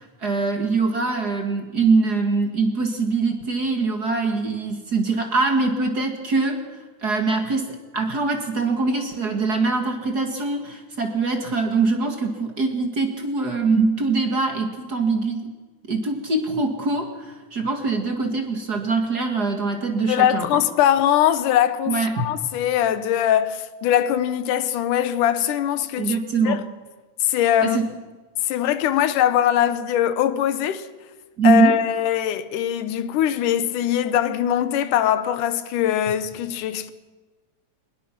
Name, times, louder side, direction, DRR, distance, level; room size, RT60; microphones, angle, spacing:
voice 1, 0.0-15.5 15.9-20.6 21.9-22.3 26.0-26.6 27.6-27.9 31.4-31.7, right 4 dB, 35° right, 2.0 m, -23 dB
voice 2, 20.1-26.2 26.4-26.6 27.2-27.8 28.4-30.9 31.4-36.9, left 10 dB, 90° left, 2.5 m, -21 dB
22.5 x 20.5 x 6.0 m
omnidirectional pair, 3.5 m